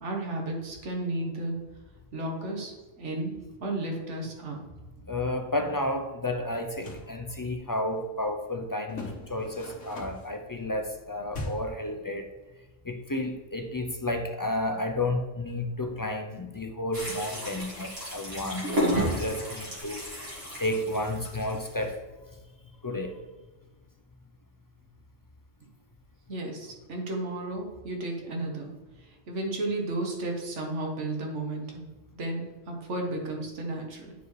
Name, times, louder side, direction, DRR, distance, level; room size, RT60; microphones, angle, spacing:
voice 1, 0.0-1.6 2.1-4.6 26.3-28.7 29.0-31.8 32.1-34.1, right 2 dB, 75° right, 1 dB, 1.6 m, -33 dB
voice 2, 5.1-12.3 12.8-20.1 20.6-22.0 22.8-23.2, left 1 dB, 35° left, 3 dB, 0.3 m, -32 dB
sound 1, 6.6-7.1 8.9-10.4 11.3-11.8, left 1 dB, 75° left, 1.6 m, -39 dB
sound 2, 16.9-21.9, equal, 55° right, 2.2 m, -32 dB
10.0 x 4.6 x 3.2 m, 1.3 s
omnidirectional pair, 1.3 m